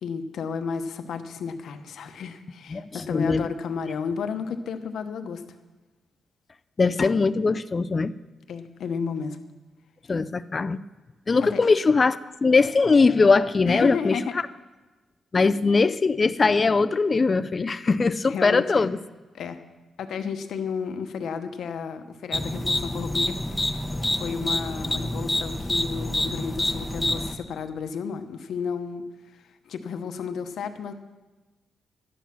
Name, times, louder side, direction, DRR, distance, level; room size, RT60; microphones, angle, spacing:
voice 1, 0.0-5.4 8.5-9.4 11.4-11.6 13.7-14.3 18.3-18.9 19.3-19.6 20.0-23.4 24.0-29.0 29.3-30.9, left 6 dB, 80° left, 8 dB, 0.9 m, -32 dB
voice 2, 2.7-3.5 6.8-8.1 10.1-10.8 11.3-14.2 15.3-19.0, left 4 dB, 35° left, 11 dB, 0.4 m, -21 dB
sound 1, 22.3-27.4, left 1 dB, 10° left, 0.9 m, -27 dB
12.0 x 9.3 x 6.0 m, 1.2 s
cardioid pair, 100°, 0 cm